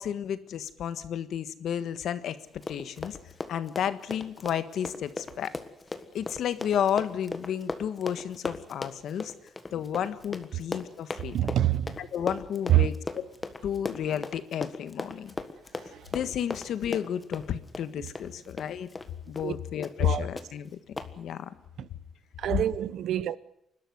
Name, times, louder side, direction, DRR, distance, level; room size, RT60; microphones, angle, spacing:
voice 1, 0.0-2.4 2.7-3.2 3.5-5.5 6.1-9.3 9.7-11.3 12.0-13.2 13.6-15.3 16.1-18.9 19.3-20.7 21.2-21.5, left 9 dB, 65° left, 1.5 m, -32 dB
Run, 2.5-19.1 19.4-19.5 19.8-20.1 20.4-20.5 21.0-21.1, left 3 dB, 20° left, 1.6 m, -37 dB
voice 2, 11.3-12.0 12.7-12.9 15.9-16.0 18.0-18.1 19.4-19.5 20.0-20.3 21.8-21.9 22.4-23.4, right 12 dB, 70° right, 0.9 m, -26 dB
28.5 x 12.5 x 9.6 m
cardioid pair, 150°, 0 cm